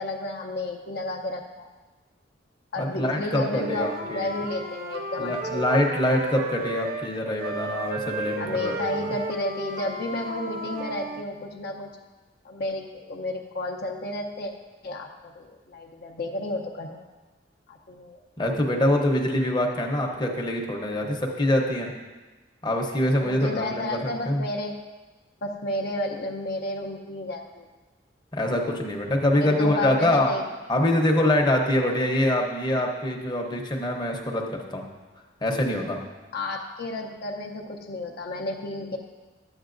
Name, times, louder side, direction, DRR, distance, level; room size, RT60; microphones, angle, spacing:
voice 1, 0.0-1.7 2.7-5.6 8.4-11.9 12.4-14.5 14.8-17.1 17.7-18.2 23.2-24.8 25.4-27.7 29.4-30.4 36.3-39.0, left 2 dB, 60° left, 1 dB, 0.7 m, -32 dB
voice 2, 2.8-4.3 5.2-8.8 18.4-21.9 22.6-24.4 28.3-30.3 30.7-34.8 35.4-36.0, left 1 dB, 25° left, 0 dB, 0.8 m, -24 dB
Wind instrument woodwind instrument, 3.5-7.1 7.4-11.3, right 3 dB, 50° right, 0.6 m, -34 dB
11.0 x 8.0 x 2.6 m, 1.2 s
head